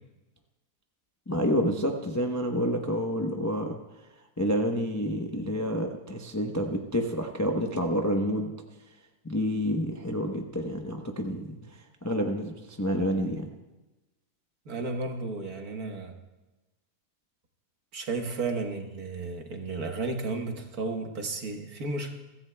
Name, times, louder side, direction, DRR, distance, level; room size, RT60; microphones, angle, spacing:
voice 1, 1.3-3.8 4.4-8.5 9.2-11.5 12.0-13.5, equal, 15° left, 2 dB, 0.5 m, -28 dB
voice 2, 14.6-16.1 17.9-22.1, right 3 dB, 65° right, 3 dB, 1.7 m, -33 dB
23.5 x 14.5 x 2.2 m, 1.1 s
omnidirectional pair, 1.7 m